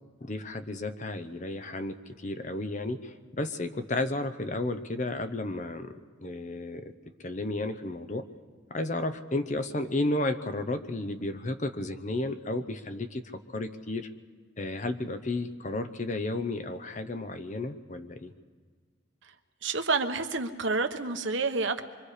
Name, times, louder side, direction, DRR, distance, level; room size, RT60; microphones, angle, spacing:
voice 1, 0.2-5.9 6.2-6.9 7.2-8.3 8.7-14.1 14.6-18.3, left 2 dB, 35° left, 9 dB, 0.8 m, -33 dB
voice 2, 19.6-21.8, right 3 dB, 70° right, 7 dB, 1.1 m, -29 dB
25.5 x 24.0 x 5.0 m, 1.5 s
head